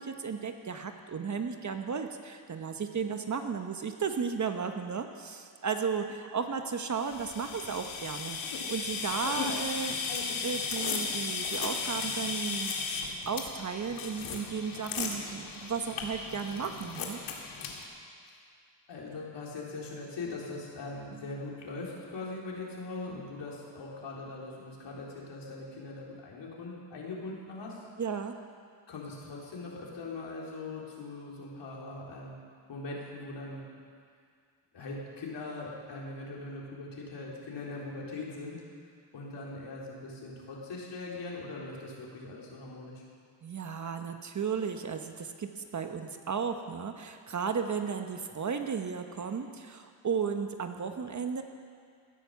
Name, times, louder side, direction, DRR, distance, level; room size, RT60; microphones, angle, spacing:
voice 1, 0.0-9.9 10.4-12.7 13.3-17.2 28.0-28.4 43.4-51.4, right 6 dB, 40° right, 6 dB, 1.1 m, -34 dB
sound 1, 7.0-17.8, left 5 dB, 85° left, 2.1 m, -35 dB
voice 2, 18.9-27.8 28.9-32.4 32.7-33.7 34.7-38.6 39.1-43.0, left 2 dB, 65° left, -4 dB, 4.0 m, -41 dB
17.0 x 10.5 x 7.1 m, 2.1 s
cardioid pair, 100°, 46 cm